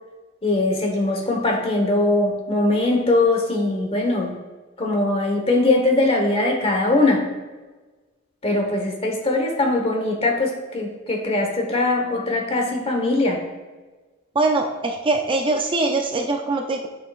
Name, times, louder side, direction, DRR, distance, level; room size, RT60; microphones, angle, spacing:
voice 1, 0.4-4.3 4.8-7.2 8.4-13.4, left 2 dB, 30° left, 2 dB, 1.2 m, -21 dB
voice 2, 14.4-16.9, right 3 dB, 25° right, 3 dB, 0.5 m, -22 dB
9.1 x 5.7 x 2.4 m, 1.3 s
head